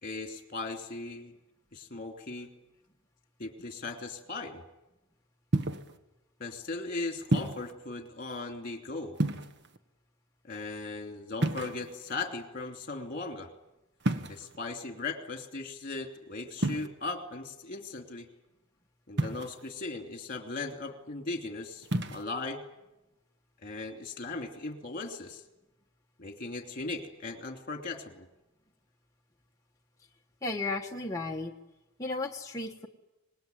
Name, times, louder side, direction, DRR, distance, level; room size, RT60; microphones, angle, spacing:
voice 1, 0.0-1.3 1.7-2.5 3.4-4.6 6.4-9.2 10.4-13.5 14.3-18.3 19.1-22.6 23.6-25.4 26.2-28.3, left 3 dB, 40° left, 4 dB, 2.8 m, -38 dB
sound 1, 5.5-6.0 7.3-7.7 9.1-9.8 11.4-12.1 14.0-14.6 16.6-16.9 19.2-19.7 21.8-22.2, right 1 dB, 55° right, 1.6 m, -30 dB
voice 2, 30.4-31.5 32.0-32.9, left 2 dB, 15° left, 0 dB, 1.4 m, -34 dB
26.0 x 20.5 x 9.3 m, 0.99 s
head